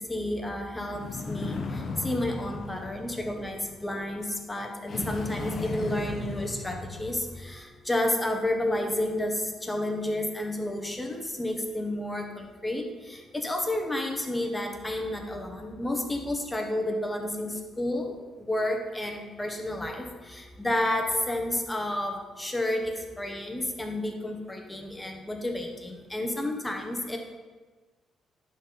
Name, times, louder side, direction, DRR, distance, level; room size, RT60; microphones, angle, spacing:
voice 1, 0.0-27.2, left 1 dB, 15° left, 3 dB, 1.1 m, -31 dB
sound 1, 0.9-4.0 4.9-7.6, left 3 dB, 50° left, 0.9 m, -36 dB
10.5 x 4.1 x 4.0 m, 1.3 s
cardioid pair, 90°, 0 cm